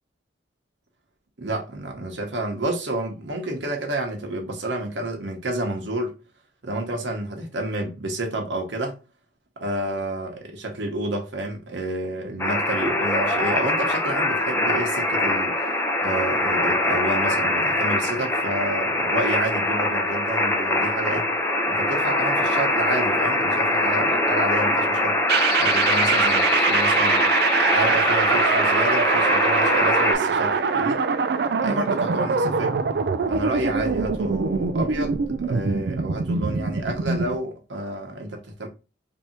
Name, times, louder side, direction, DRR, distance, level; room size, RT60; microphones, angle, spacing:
voice 1, 1.4-6.2 6.6-8.9 9.6-15.7 16.0-21.3 21.7-25.2 25.6-27.2 27.7-31.0 31.6-32.8 33.3-38.7, right 1 dB, 75° right, 1.0 m, -30 dB
sound 1, 12.4-30.1, left 1 dB, 15° left, 0.7 m, -22 dB
sound 2, 25.3-37.4, right 5 dB, 55° right, 0.3 m, -23 dB
3.3 x 2.8 x 4.3 m
head